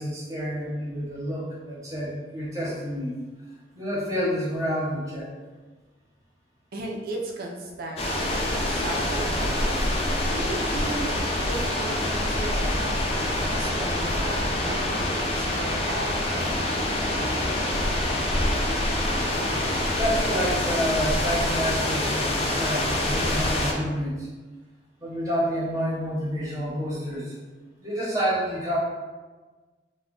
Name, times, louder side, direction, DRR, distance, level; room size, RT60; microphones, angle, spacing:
voice 1, 0.0-3.1 3.7-5.3 15.5-15.7 20.0-24.3 25.0-27.3 27.8-28.8, equal, 20° right, -7 dB, 0.8 m, -29 dB
voice 2, 6.7-8.0 8.7-9.8 10.3-11.1 11.4-16.8 17.1-17.4, right 1 dB, 55° right, 0 dB, 0.4 m, -36 dB
sound 1, 8.0-23.7, left 1 dB, 35° left, 0.4 m, -26 dB
2.3 x 2.1 x 3.6 m, 1.3 s
head